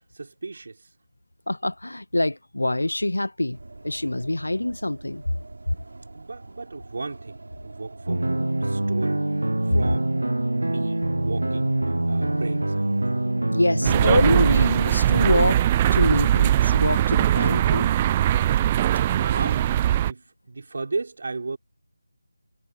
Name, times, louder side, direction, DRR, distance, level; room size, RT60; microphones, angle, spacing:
voice 1, 0.1-0.8 5.5-9.3 9.7-12.9 19.1-21.6, right 3 dB, 50° right, 5.1 m, -35 dB
voice 2, 1.5-3.6 3.8-5.2 13.5-15.6 15.9-17.9, left 1 dB, 90° left, 1.4 m, -25 dB
sound 1, 3.5-17.0, right 2 dB, 70° right, 3.5 m, -43 dB
sound 2, 8.1-14.7, right 1 dB, 85° right, 0.4 m, -25 dB
sound 3, 13.8-20.1, right 12 dB, 15° right, 0.5 m, -20 dB
figure-of-eight pair, 170°, 0 cm